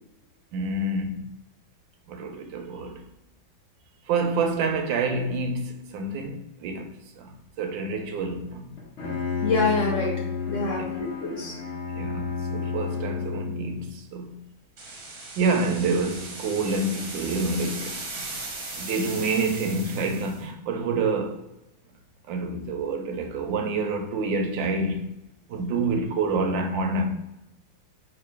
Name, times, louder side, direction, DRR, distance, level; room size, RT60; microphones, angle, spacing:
voice 1, 0.5-1.3 2.1-3.0 4.1-8.7 10.6-10.9 11.9-14.4 15.4-18.0 18.7-21.4 22.3-25.1 25.5-27.1, right 3 dB, 80° right, 1.3 m, -28 dB
Bowed string instrument, 8.8-13.8, left 5 dB, 45° left, 1.0 m, -31 dB
voice 2, 9.4-11.5, left 3 dB, 65° left, 0.7 m, -27 dB
sound 1, 14.8-20.4, right 3 dB, 55° right, 1.2 m, -37 dB
3.2 x 3.0 x 4.7 m
omnidirectional pair, 2.1 m